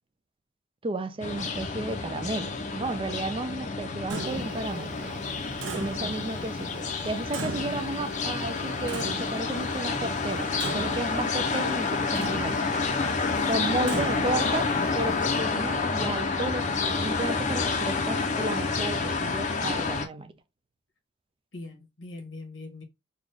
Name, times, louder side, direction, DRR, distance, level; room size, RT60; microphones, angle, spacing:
voice 1, 0.8-5.0 5.7-12.7 13.5-20.3, right 2 dB, 30° right, 0.4 m, -33 dB
sound 1, 1.2-20.1, left 4 dB, 40° left, 0.7 m, -29 dB
Clock, 4.1-15.4, right 3 dB, 80° right, 0.6 m, -40 dB
voice 2, 13.3-13.9 21.5-22.8, left 1 dB, 85° left, 1.4 m, -41 dB
4.1 x 2.4 x 3.2 m
head